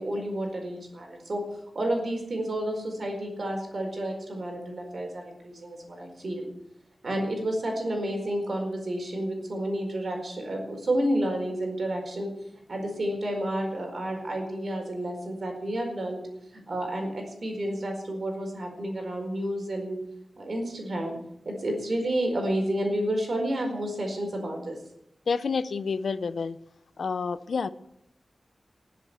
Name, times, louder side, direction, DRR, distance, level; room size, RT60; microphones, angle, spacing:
voice 1, 0.0-1.4 1.7-6.5 7.0-12.3 12.7-16.2 16.7-20.0 20.4-21.1 21.4-24.8, right 1 dB, 55° right, 3 dB, 4.7 m, -30 dB
voice 2, 25.3-26.6 27.0-27.7, left 5 dB, 80° left, 14 dB, 0.7 m, -29 dB
20.0 x 7.8 x 8.1 m, 0.79 s
wide cardioid pair, 120°, 0 cm